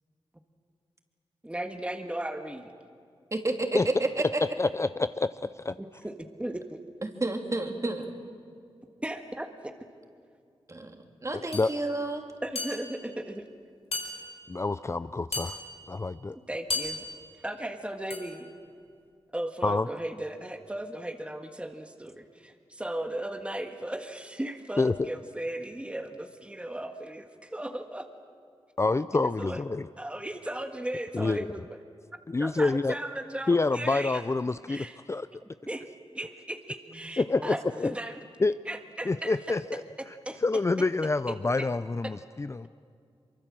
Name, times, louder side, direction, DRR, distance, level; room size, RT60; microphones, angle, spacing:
voice 1, 1.4-2.7 5.8-6.8 9.0-9.7 12.4-13.5 16.3-17.0 17.4-18.5 19.3-28.1 29.4-29.6 30.0-31.7 32.4-34.2 34.7-35.0 35.7-35.9 36.1-38.1 38.7-39.4 40.3-40.4 41.6-41.7, right 1 dB, 10° right, 5 dB, 1.7 m, -36 dB
voice 2, 3.3-4.4 7.0-8.1 10.7-12.3 37.3-37.8, right 2 dB, 30° right, 3 dB, 3.0 m, -31 dB
voice 3, 4.6-5.8 11.5-11.7 14.5-15.6 15.9-16.4 19.6-19.9 24.8-25.1 28.8-29.9 31.1-31.4 32.3-32.9 33.5-35.3 37.2-37.9 38.4-38.5 39.1-39.8 40.4-42.7, left 3 dB, 30° left, 13 dB, 0.5 m, -27 dB
sound 1, 11.5-11.7 12.5-13.1 13.9-14.6 15.3-15.9 16.7-17.3 18.1-18.5, left 3 dB, 80° left, 4.0 m, -35 dB
24.5 x 24.0 x 7.6 m, 2.4 s
cardioid pair, 60°, 10 cm